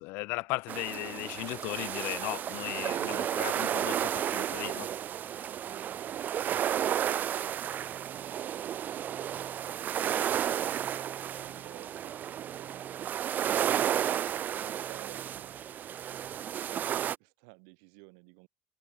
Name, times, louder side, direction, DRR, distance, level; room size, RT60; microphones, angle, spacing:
voice 1, 0.0-4.9, left 25 dB, 80° left, 0.7 m, -36 dB
sound 1, 0.7-17.1, right 10 dB, 55° right, 0.4 m, -32 dB
voice 2, 9.5-13.9 14.6-18.5, right 40 dB or more, 85° right, 7.4 m, -55 dB
hypercardioid pair, 65°, 4 cm